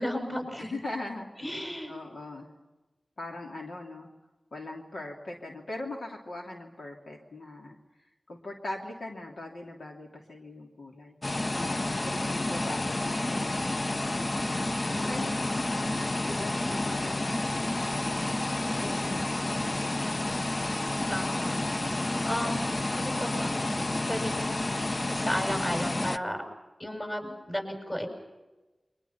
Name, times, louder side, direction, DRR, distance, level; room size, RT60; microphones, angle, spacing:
voice 1, 0.0-0.7 1.4-1.9 14.9-15.5 18.8-19.3 21.1-21.5 22.2-23.6 23.9-26.4 26.8-28.1, equal, 25° left, 3 dB, 7.8 m, -34 dB
voice 2, 0.6-1.6 1.9-2.5 3.2-4.1 4.5-7.8 8.3-11.5 11.9-14.2 14.9-17.6, left 2 dB, 85° left, 0 dB, 3.0 m, -41 dB
sound 1, 11.2-26.2, left 2 dB, 40° left, 0.8 m, -30 dB
29.5 x 24.5 x 5.9 m, 1.1 s
wide cardioid pair, 60°, 0 cm